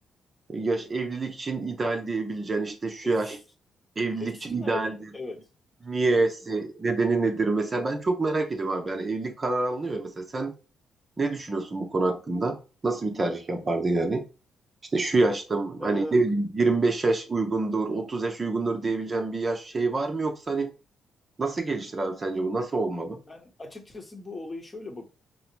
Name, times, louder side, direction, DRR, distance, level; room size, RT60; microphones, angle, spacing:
voice 1, 0.5-3.4 4.0-5.0 5.8-10.5 11.2-12.6 12.8-14.2 14.9-20.7 21.4-23.2, right 3 dB, 35° right, 0.7 m, -27 dB
voice 2, 4.2-4.8 5.1-5.4 6.1-6.6 15.8-16.2 23.3-25.0, left 2 dB, 25° left, 0.9 m, -38 dB
4.7 x 2.0 x 3.0 m
hypercardioid pair, 45°, 0 cm